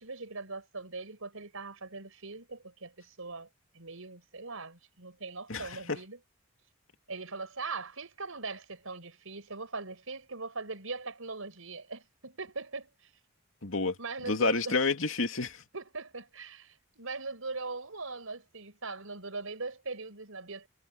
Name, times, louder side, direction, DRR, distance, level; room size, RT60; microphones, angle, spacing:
voice 1, 0.0-3.5 3.7-6.2 7.1-12.9 14.0-14.8 15.7-20.7, right 3 dB, 90° right, 5.2 m, -40 dB
voice 2, 5.5-6.0 13.6-14.0 14.3-15.6, left 3 dB, 75° left, 2.5 m, -29 dB
head